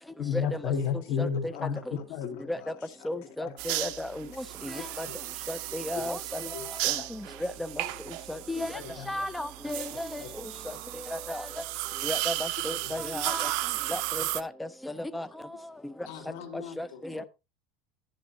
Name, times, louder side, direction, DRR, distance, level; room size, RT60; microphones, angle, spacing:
voice 1, 0.2-2.4 3.4-3.5 3.8-3.9 5.0-5.1 5.9-6.2 6.5-6.7 6.9-7.1 8.7-9.3 10.2-10.3 12.9-13.0 17.1-17.2, left 7 dB, 45° left, 1.6 m, -32 dB
voice 2, 1.5-2.0 2.4-3.1 3.7-3.9 16.1-17.3, left 8 dB, 80° left, 2.7 m, -46 dB
voice 3, 3.1-4.3 4.6-5.1 5.5-6.2 6.8-6.9 8.3-8.7 9.1-10.2 11.1-11.4 12.0-12.3 12.6-13.5 13.9-14.5 14.8-15.3 16.8-17.2, left 1 dB, 5° left, 0.5 m, -34 dB
sound 1, 3.6-14.4, right 19 dB, 60° right, 0.6 m, -34 dB
11.0 x 10.5 x 2.7 m
cardioid pair, 155°, 0 cm